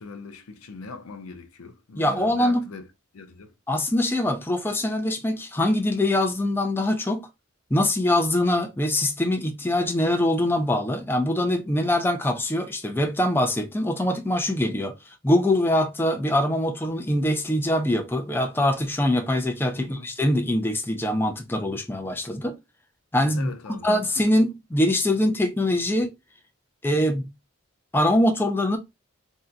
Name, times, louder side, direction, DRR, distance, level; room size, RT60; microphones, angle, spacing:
voice 1, 0.0-2.9 3.1-3.5 19.8-20.1 23.3-23.9, left 4 dB, 80° left, 0.5 m, -41 dB
voice 2, 2.0-2.6 3.7-7.3 7.7-22.5 23.1-26.1 26.8-27.3 27.9-28.8, left 1 dB, 10° left, 0.5 m, -23 dB
2.7 x 2.2 x 3.7 m
head